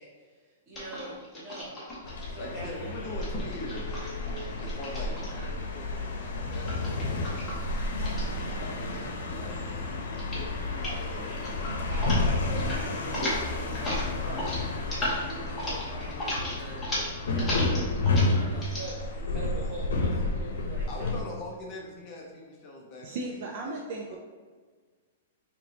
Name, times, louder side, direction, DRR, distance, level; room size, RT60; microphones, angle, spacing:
voice 1, 0.0-1.8 2.3-3.0 11.9-16.8 17.3-17.7 18.1-21.1, right 1 dB, 20° right, -8 dB, 1.4 m, -43 dB
sound 1, 0.7-2.2 3.1-5.6 6.5-9.1 9.3-9.7 10.1-10.5 10.7-11.0 11.3-12.2 12.5-12.8 13.0-18.9, left 1 dB, 5° left, 0.9 m, -35 dB
sound 2, 2.0-21.2, left 2 dB, 90° left, 0.7 m, -31 dB
voice 2, 2.2-4.0 4.6-7.8 8.6-11.9 13.1-13.3 17.4-18.1 20.9-23.7 24.1-24.2, left 2 dB, 25° left, -2 dB, 0.5 m, -43 dB
sound 3, 3.6-16.8, right 2 dB, 85° right, 1.3 m, -48 dB
voice 3, 23.0-24.2, right 2 dB, 40° right, -1 dB, 0.4 m, -36 dB
3.3 x 2.9 x 3.9 m, 1.5 s
hypercardioid pair, 175°, 0 cm